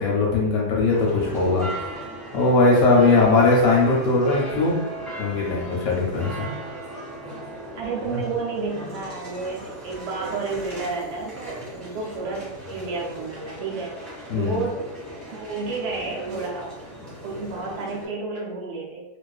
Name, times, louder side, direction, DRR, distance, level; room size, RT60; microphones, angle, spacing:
voice 1, 0.0-1.7 2.3-4.8 5.2-6.5 14.3-14.6, left 3 dB, 70° left, -4 dB, 0.9 m, -19 dB
sound 1, 0.9-18.1, equal, ahead, 1.2 m, -37 dB
voice 2, 7.8-13.9 14.4-14.8 15.3-19.0, right 4 dB, 65° right, -3 dB, 0.7 m, -31 dB
2.4 x 2.3 x 2.3 m, 1.1 s
omnidirectional pair, 1.6 m